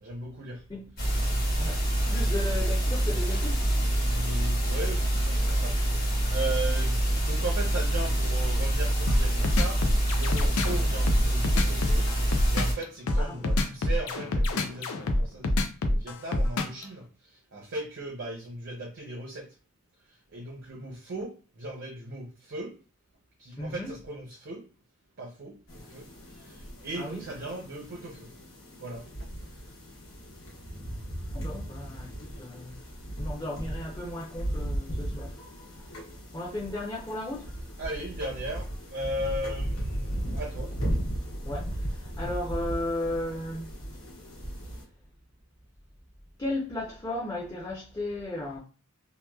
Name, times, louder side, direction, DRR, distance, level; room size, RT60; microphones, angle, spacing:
voice 1, 0.0-0.6 4.0-12.1 12.5-19.5 20.3-22.8 23.4-24.7 25.2-26.1 26.4-28.3 28.8-29.1 29.4-29.5 30.7-30.8 37.8-40.8, right 1 dB, 55° right, 0.6 m, -37 dB
sound 1, 1.0-12.7, right 1 dB, 45° left, 1.3 m, -26 dB
voice 2, 1.6-3.6 13.2-13.4 23.6-23.9 27.0-27.2 31.3-32.8 33.2-35.4 36.3-37.7 41.4-43.7 46.4-48.6, left 1 dB, 20° left, 0.5 m, -35 dB
sound 2, 9.1-16.8, left 1 dB, 85° left, 0.4 m, -26 dB
sound 3, 25.7-44.8, right 1 dB, 65° left, 1.1 m, -36 dB
2.8 x 2.1 x 2.2 m
head